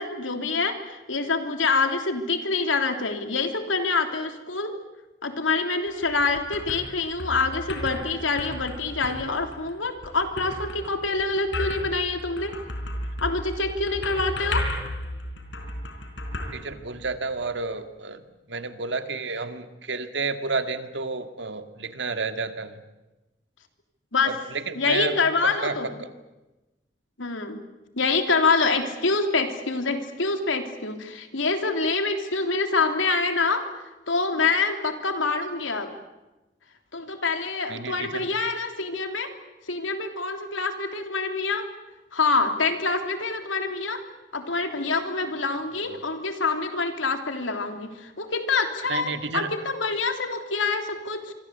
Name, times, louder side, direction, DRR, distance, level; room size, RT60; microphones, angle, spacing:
voice 1, 0.0-4.7 5.2-12.5 13.2-14.7 24.1-24.3 24.7-25.9 27.2-27.6 27.9-33.6 34.1-35.9 36.9-39.3 39.7-41.7 42.1-44.0 44.3-51.3, left 4 dB, 85° left, 6 dB, 3.3 m, -26 dB
sound 1, 5.9-17.4, left 1 dB, 70° left, 4.4 m, -34 dB
voice 2, 16.5-22.8 24.3-25.2 25.4-26.1 37.7-38.3 45.9-46.0 48.9-49.5, right 4 dB, 65° right, 8 dB, 2.0 m, -31 dB
25.5 x 25.0 x 8.3 m, 1.1 s
head